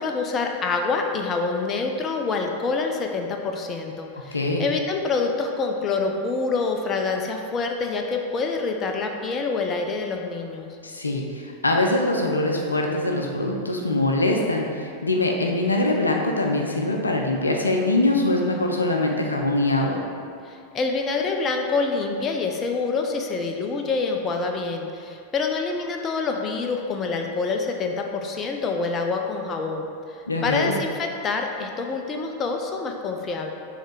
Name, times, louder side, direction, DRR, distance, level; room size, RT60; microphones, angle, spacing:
voice 1, 0.0-10.7 20.4-33.5, left 4 dB, 25° left, 3 dB, 0.5 m, -26 dB
voice 2, 4.3-4.7 10.8-20.0 30.3-30.8, left 2 dB, 80° left, 1 dB, 0.6 m, -23 dB
6.5 x 3.3 x 4.6 m, 2.5 s
figure-of-eight pair, 90°, 0 cm